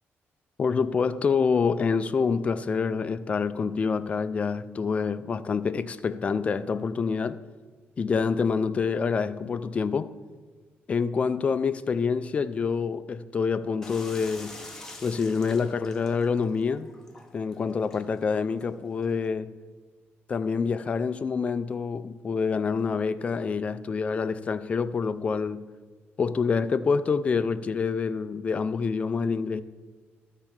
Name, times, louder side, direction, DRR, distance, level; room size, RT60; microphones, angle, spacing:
voice 1, 0.6-7.4 8.0-10.1 10.9-14.6 15.0-16.9 17.3-19.5 20.3-25.6 26.2-29.6, left 5 dB, 30° left, 0.4 m, -27 dB
sound 1, 13.8-19.3, left 2 dB, 10° left, 1.0 m, -47 dB
12.5 x 4.4 x 7.2 m
wide cardioid pair, 170°, 4 cm